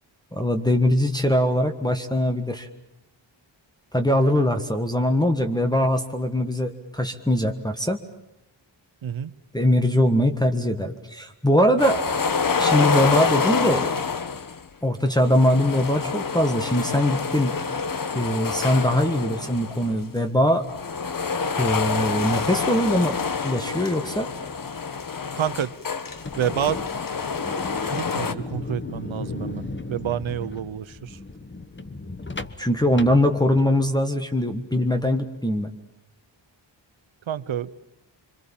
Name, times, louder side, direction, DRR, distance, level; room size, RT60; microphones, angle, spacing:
voice 1, 0.3-2.7 3.9-8.0 9.5-12.0 12.6-13.9 14.8-17.6 18.1-20.7 21.6-23.2 23.4-24.3 32.6-35.7, left 1 dB, 10° left, 3 dB, 1.6 m, -22 dB
sound 1, 11.8-14.6 15.2-20.0 20.6-28.3, left 5 dB, 45° left, 1.3 m, -27 dB
voice 2, 25.3-25.8 26.4-26.8 27.8-31.2 37.3-37.7, right 9 dB, 85° right, 15 dB, 1.1 m, -28 dB
sound 2, 26.1-33.9, left 3 dB, 25° left, 1.3 m, -36 dB
26.0 x 25.5 x 7.3 m, 0.92 s
wide cardioid pair, 110°, 46 cm